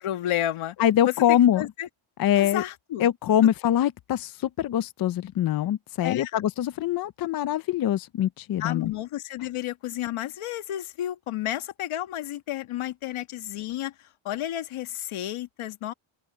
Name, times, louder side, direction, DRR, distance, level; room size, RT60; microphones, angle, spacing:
voice 1, 0.0-0.8 1.0-1.1 1.6-1.9 2.4-3.1 6.0-6.3 8.6-13.9 14.2-15.9, left 13 dB, 85° left, 1.5 m, -31 dB
voice 2, 0.8-1.7 2.2-2.6 3.0-8.9, left 11 dB, 45° left, 0.5 m, -23 dB
open air
cardioid pair, 170°, 49 cm